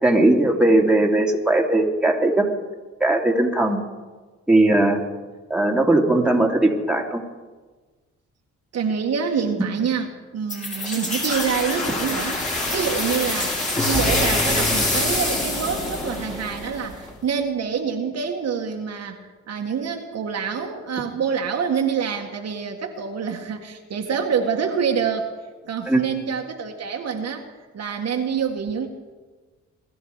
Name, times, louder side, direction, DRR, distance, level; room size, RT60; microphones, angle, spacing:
voice 1, 0.0-2.5 3.0-3.8 4.5-5.0 5.5-7.2 25.9-26.0, right 2 dB, 5° right, 0 dB, 2.6 m, -18 dB
voice 2, 8.7-12.4 12.7-25.3 25.6-27.4 27.7-28.9, right 6 dB, 55° right, 3 dB, 1.9 m, -26 dB
sound 1, 10.5-17.1, left 2 dB, 25° left, 4.6 m, -25 dB
22.0 x 13.0 x 4.9 m, 1.3 s
cardioid pair, 90°, 30 cm